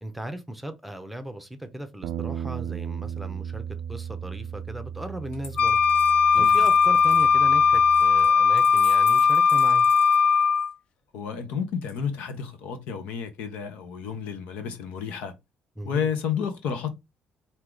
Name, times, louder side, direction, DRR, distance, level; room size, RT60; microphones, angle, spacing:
voice 1, 0.0-3.6 3.9-5.8 6.3-9.9 15.8-16.1, right 1 dB, ahead, 0.7 m, -37 dB
Bass guitar, 2.0-8.3, right 9 dB, 65° right, 0.3 m, -36 dB
Coin (dropping), 5.3-10.7 11.8-12.5, left 3 dB, 65° left, 1.8 m, -46 dB
Wind instrument woodwind instrument, 5.6-10.7, left 6 dB, 45° left, 0.5 m, -19 dB
voice 2, 11.1-15.3 15.8-16.9, left 7 dB, 90° left, 1.0 m, -31 dB
4.6 x 2.8 x 3.8 m
cardioid pair, 140°, 2 cm